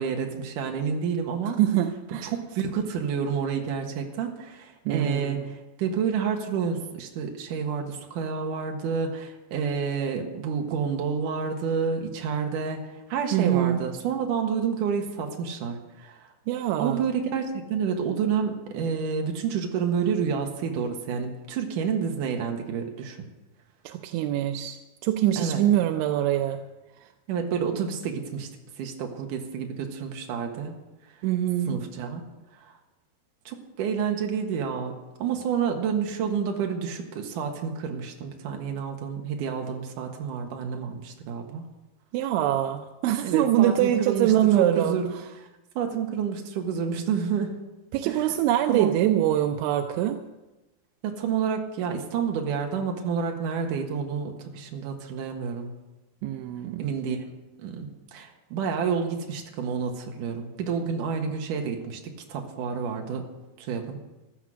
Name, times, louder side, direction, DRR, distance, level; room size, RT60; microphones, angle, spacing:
voice 1, 0.0-1.6 2.1-16.3 16.8-23.3 25.4-25.6 27.3-28.5 28.8-30.7 31.7-32.2 32.6-32.7 33.5-34.9 35.2-41.7 43.2-45.1 45.8-47.5 48.0-48.3 48.7-48.9 51.0-55.7 56.8-57.2 57.6-63.3 63.6-64.0, right 6 dB, 60° right, 3 dB, 2.5 m, -29 dB
voice 2, 1.6-2.3 4.9-5.4 13.3-13.8 16.5-17.0 23.9-26.6 31.2-31.8 42.1-45.0 47.9-50.2 56.2-56.9, right 12 dB, 85° right, 5 dB, 3.1 m, -24 dB
15.0 x 12.0 x 6.3 m, 1.1 s
omnidirectional pair, 5.2 m